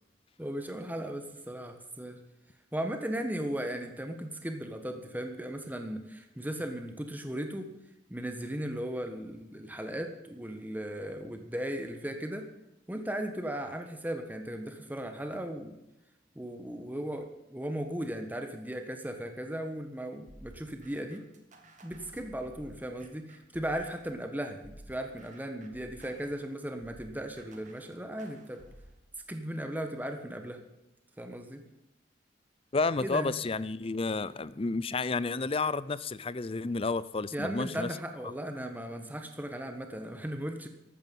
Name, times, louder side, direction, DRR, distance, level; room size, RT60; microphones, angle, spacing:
voice 1, 0.4-2.2 2.7-7.7 8.1-12.5 12.9-15.8 16.3-21.2 21.8-28.6 29.3-30.6 31.2-31.6 33.0-33.3 37.3-40.7, right 1 dB, 10° right, 5 dB, 1.4 m, -37 dB
sound 1, 20.3-24.2 24.6-29.0, right 1 dB, 40° right, 2.2 m, -54 dB
voice 2, 32.7-37.9, left 3 dB, 30° left, 17 dB, 0.5 m, -31 dB
14.5 x 12.5 x 5.5 m, 0.90 s
head